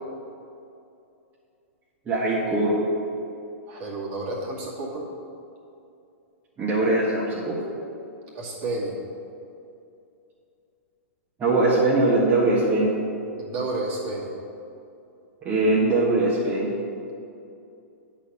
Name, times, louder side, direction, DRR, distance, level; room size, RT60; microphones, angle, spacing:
voice 1, 2.1-2.8 6.6-7.6 11.4-12.9 15.4-16.7, right 2 dB, 25° right, -6 dB, 1.6 m, -21 dB
voice 2, 3.7-5.0 8.3-8.9 13.4-14.3, right 2 dB, 45° right, -4 dB, 2.3 m, -31 dB
9.1 x 4.3 x 7.0 m, 2.7 s
hypercardioid pair, 110°, 7 cm